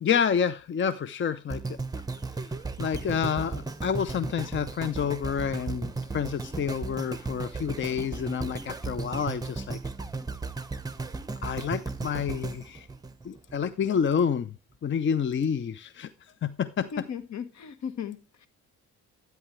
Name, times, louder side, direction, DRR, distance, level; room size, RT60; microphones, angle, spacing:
voice 1, 0.0-1.8 2.8-9.8 11.4-12.9 13.2-14.5 14.8-16.1 16.4-16.9, left 7 dB, 40° left, 0.6 m, -28 dB
sound 1, 1.5-13.7 14.2-14.3, right 3 dB, 10° right, 1.0 m, -35 dB
voice 2, 16.9-18.5, left 7 dB, 65° left, 1.4 m, -37 dB
12.5 x 9.3 x 3.2 m
cardioid pair, 90°, 30 cm